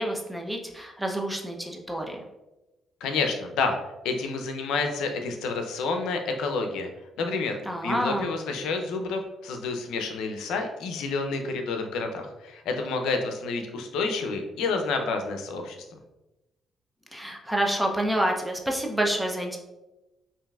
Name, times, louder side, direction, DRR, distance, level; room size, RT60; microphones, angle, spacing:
voice 1, 0.0-2.2 7.7-8.3 17.1-19.6, right 1 dB, 5° right, 1 dB, 0.6 m, -28 dB
voice 2, 3.0-3.8 4.0-6.9 7.2-15.8, left 4 dB, 90° left, 5 dB, 0.5 m, -29 dB
5.5 x 2.6 x 2.3 m, 1.0 s
cardioid pair, 90°, 0 cm